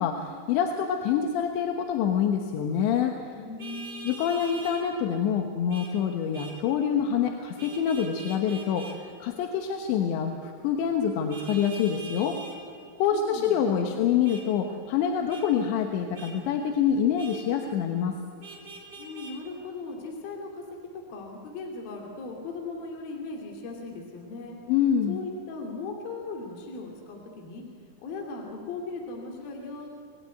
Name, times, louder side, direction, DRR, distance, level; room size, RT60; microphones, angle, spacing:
voice 1, 0.0-3.2 4.1-12.4 13.0-18.2 24.7-25.2, left 8 dB, 85° left, 4 dB, 3.5 m, -26 dB
voice 2, 3.3-4.1 13.1-14.0 19.0-20.6 21.1-24.6 25.1-27.6 28.0-30.0, left 3 dB, 60° left, 1 dB, 4.3 m, -38 dB
Vehicle horn car horn honking, 3.6-4.8 5.7-5.9 6.3-6.6 7.6-9.0 11.3-12.6 14.2-14.4 15.3-15.5 16.1-16.3 17.2-17.4 18.4-19.3, right 3 dB, 25° right, 4.1 m, -43 dB
27.5 x 18.5 x 9.4 m, 2.2 s
omnidirectional pair, 5.0 m